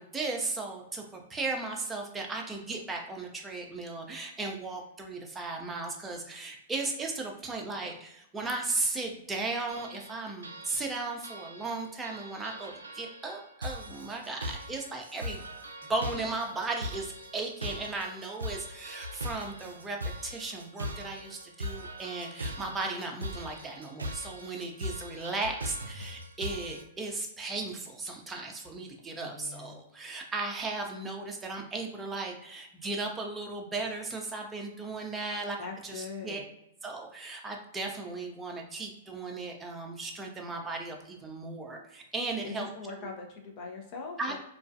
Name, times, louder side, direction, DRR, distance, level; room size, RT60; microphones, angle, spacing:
voice 1, 0.0-15.4 15.9-36.4 36.8-42.7 43.0-43.1 44.2-44.4, right 3 dB, 15° right, 1 dB, 0.5 m, -36 dB
sound 1, 9.7-26.8, equal, 90° right, 0.3 m, -41 dB
voice 2, 29.1-29.8 35.6-36.4 42.4-44.4, left 4 dB, 40° left, 1 dB, 0.6 m, -41 dB
2.3 x 2.3 x 2.5 m, 0.81 s
hypercardioid pair, 115°, 0 cm